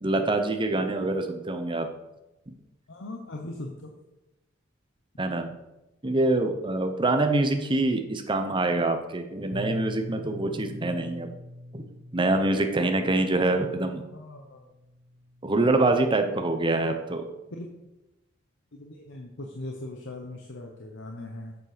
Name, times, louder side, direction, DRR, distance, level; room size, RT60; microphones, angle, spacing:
voice 1, 0.0-1.9 2.5-2.6 5.2-5.5 6.0-11.3 11.7-11.8 12.1-14.0 15.4-17.2, right 2 dB, 25° right, 6 dB, 0.8 m, -25 dB
voice 2, 2.9-3.9 14.1-14.7 17.5-17.7 18.7-21.6, left 1 dB, 60° left, 2 dB, 1.0 m, -39 dB
Bass guitar, 9.5-14.0 14.8-15.8, equal, 65° right, 0.8 m, -42 dB
8.1 x 7.4 x 5.1 m, 0.98 s
head